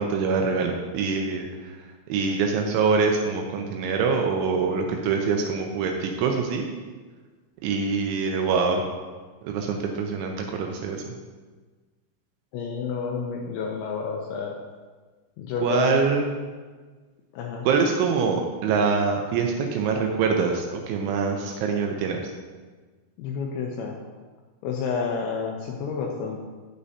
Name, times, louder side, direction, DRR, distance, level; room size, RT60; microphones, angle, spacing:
voice 1, 0.0-1.8 2.1-6.7 7.6-8.8 9.4-11.0 15.6-16.3 17.7-22.2, right 5 dB, 80° right, 2 dB, 2.9 m, -24 dB
voice 2, 12.5-14.5 15.4-16.1 17.3-17.7 23.2-24.0 24.6-26.4, left 5 dB, 80° left, 0 dB, 2.7 m, -29 dB
9.8 x 8.3 x 2.7 m, 1.4 s
omnidirectional pair, 5.7 m